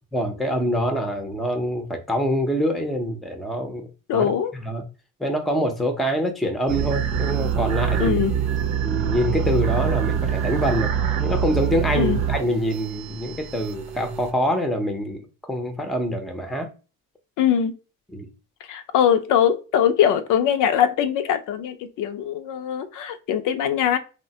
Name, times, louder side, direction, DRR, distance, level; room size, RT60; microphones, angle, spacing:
voice 1, 0.1-4.8 5.2-8.2 8.8-10.9 11.2-16.7 18.1-18.3, equal, ahead, 0.5 m, -25 dB
voice 2, 4.1-4.5 8.0-8.3 11.9-12.2 17.4-17.7 18.7-24.0, left 9 dB, 70° left, 0.5 m, -21 dB
sound 1, 6.7-14.3, right 8 dB, 80° right, 0.7 m, -25 dB
3.1 x 2.1 x 2.7 m
cardioid pair, 110°, 32 cm